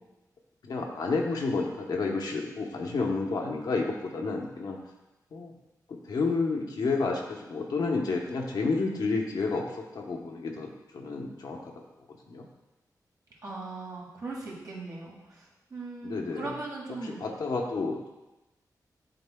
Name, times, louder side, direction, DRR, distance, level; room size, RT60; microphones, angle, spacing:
voice 1, 0.6-4.8 5.3-5.5 5.9-12.5 16.0-16.5 17.0-18.1, left 3 dB, 75° left, 1 dB, 0.9 m, -30 dB
voice 2, 13.4-17.2, right 3 dB, 60° right, -4 dB, 2.0 m, -39 dB
10.5 x 4.1 x 2.2 m, 1.0 s
wide cardioid pair, 115°, 7 cm